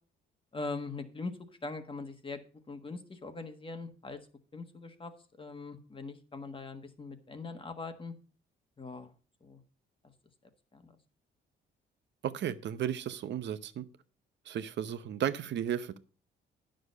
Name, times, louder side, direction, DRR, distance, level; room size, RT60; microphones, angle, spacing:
voice 1, 0.5-2.4 2.7-4.2 4.5-5.1 5.4-8.1 8.8-9.1 9.4-9.6 10.7-10.9, left 3 dB, 25° left, 1.4 m, -41 dB
voice 2, 12.2-13.9 14.5-16.0, right 10 dB, 65° right, 0.8 m, -34 dB
9.8 x 6.5 x 5.3 m
cardioid pair, 90°, 20 cm